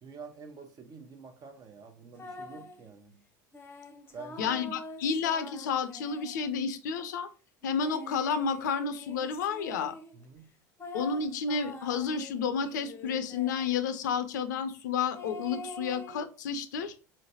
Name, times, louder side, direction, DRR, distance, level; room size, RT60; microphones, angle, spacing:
voice 1, 0.0-3.2 4.1-4.6 10.1-10.5, right 5 dB, 40° right, 0.8 m, -48 dB
sound 1, 2.2-2.8 3.5-6.8 7.6-10.2 10.8-13.9 15.1-16.2, left 1 dB, 25° left, 0.7 m, -45 dB
voice 2, 4.4-7.3 7.6-10.0 10.9-16.9, left 6 dB, 80° left, 0.5 m, -31 dB
4.2 x 3.2 x 2.7 m
hypercardioid pair, 80°, 10 cm